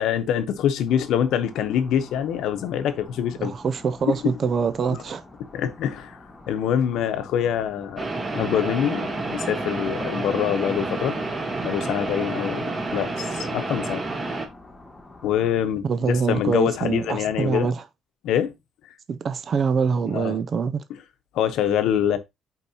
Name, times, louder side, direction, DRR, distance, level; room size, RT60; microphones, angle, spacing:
voice 1, 0.0-3.5 4.1-4.4 4.9-5.0 5.5-6.2 6.5-8.0 8.3-11.1 11.6-14.0 15.2-17.7 18.2-18.5 20.1-20.4 21.3-22.2, left 9 dB, 75° left, 0.9 m, -25 dB
sound 1, 0.9-15.5, left 2 dB, 15° left, 1.3 m, -46 dB
voice 2, 3.4-5.2 15.8-17.8 19.1-20.8, right 6 dB, 35° right, 0.4 m, -24 dB
sound 2, 8.0-14.5, right 2 dB, 20° right, 1.3 m, -29 dB
8.3 x 4.6 x 2.8 m
cardioid pair, 175°, 0 cm